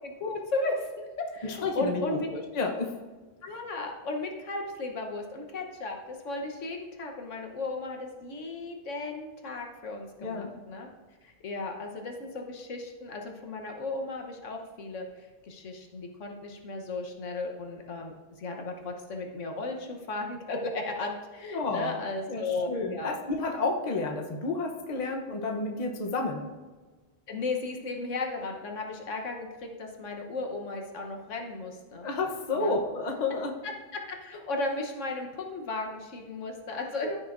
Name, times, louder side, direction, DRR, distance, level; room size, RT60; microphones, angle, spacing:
voice 1, 0.0-2.3 3.4-10.9 11.2-23.1 27.3-32.1 32.5-32.8 33.3-37.1, left 2 dB, 80° left, 2 dB, 1.4 m, -35 dB
voice 2, 1.6-2.0 2.3-3.0 10.2-10.5 21.5-22.0 22.3-26.4 32.0-33.5 37.0-37.2, left 3 dB, 40° left, 2 dB, 1.0 m, -31 dB
14.5 x 6.2 x 2.6 m, 1.3 s
omnidirectional pair, 1.3 m